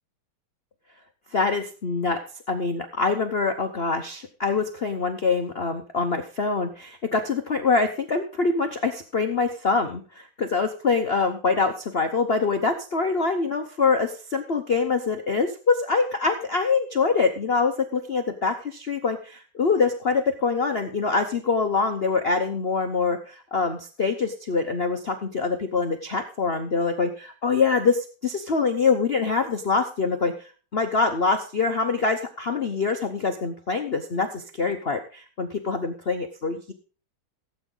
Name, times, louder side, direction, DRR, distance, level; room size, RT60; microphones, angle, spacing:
voice 1, 1.3-2.2 2.5-36.7, left 4 dB, 55° left, 6 dB, 0.6 m, -24 dB
16.5 x 8.2 x 3.9 m, 0.38 s
omnidirectional pair, 2.3 m